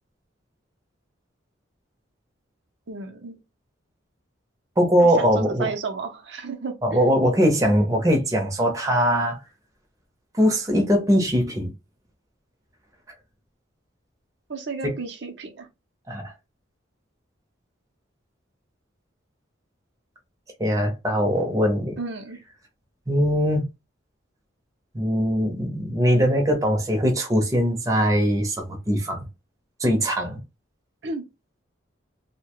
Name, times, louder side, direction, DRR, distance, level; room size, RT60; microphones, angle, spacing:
voice 1, 2.9-3.3 5.0-7.1 14.5-15.7 22.0-22.4 31.0-31.2, right 4 dB, 60° right, 0.6 m, -32 dB
voice 2, 4.8-5.7 6.8-9.4 10.3-11.7 14.8-14.9 16.1-16.3 20.6-22.0 23.1-23.7 24.9-29.3 29.8-30.4, equal, 15° right, 0.6 m, -21 dB
2.7 x 2.1 x 2.9 m
head